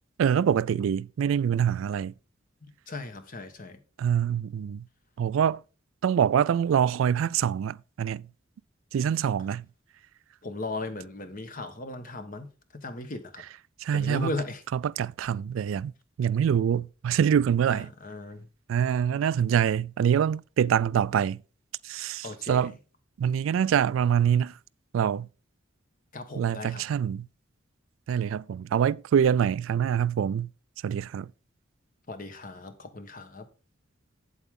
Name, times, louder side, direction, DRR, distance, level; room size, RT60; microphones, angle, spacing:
voice 1, 0.2-2.1 4.0-4.8 5.2-5.6 6.0-8.2 8.9-9.6 13.8-14.3 14.7-15.9 16.2-17.9 18.7-21.4 21.8-22.7 23.2-24.5 24.9-25.3 26.4-27.3 28.1-30.5 30.8-31.3, right 8 dB, 85° right, 0.3 m, -25 dB
voice 2, 2.9-3.8 10.4-12.5 12.7-13.4 13.9-14.6 17.7-18.5 22.2-22.7 26.1-26.8 32.1-33.4, left 2 dB, 45° left, 1.2 m, -37 dB
8.2 x 8.0 x 3.7 m
head